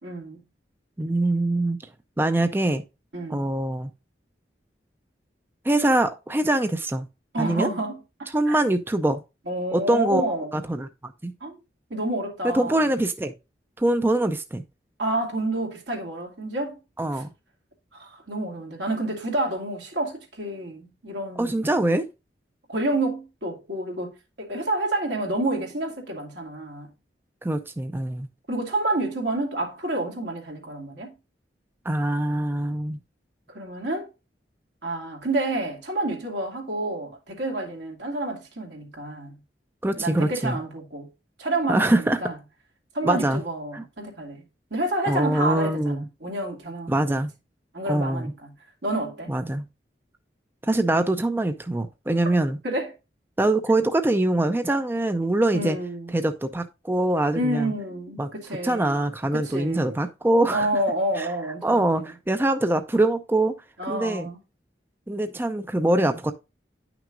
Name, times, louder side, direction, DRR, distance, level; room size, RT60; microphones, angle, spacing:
voice 1, 0.0-0.4 3.1-3.5 7.3-8.6 9.5-10.5 11.4-11.6 11.9-12.9 15.0-16.8 17.1-17.2 17.9-21.7 22.7-26.9 28.5-31.1 33.5-34.1 34.8-39.3 40.0-41.1 41.4-42.4 42.9-44.4 44.7-47.2 47.7-48.5 48.8-49.3 52.6-52.9 55.5-56.2 57.4-59.0 59.3-60.0 60.5-62.0 63.8-64.4, right 1 dB, 85° right, 2.5 m, -29 dB
voice 2, 1.0-1.8 2.2-2.8 3.3-3.9 5.6-7.1 7.4-7.7 8.3-9.2 9.7-11.3 12.5-13.3 13.8-14.6 17.0-17.3 21.4-22.1 27.4-28.3 31.9-33.0 39.8-40.6 41.7-42.2 43.0-43.4 43.7-43.8 45.1-46.1 46.9-47.3 47.9-48.3 49.3-49.6 50.6-52.6 53.4-55.8 56.1-57.7 58.2-58.3 58.6-60.7 61.2-61.3 61.6-63.5 63.9-64.3 65.1-66.3, right 1 dB, 10° right, 0.4 m, -23 dB
9.9 x 6.0 x 2.5 m
head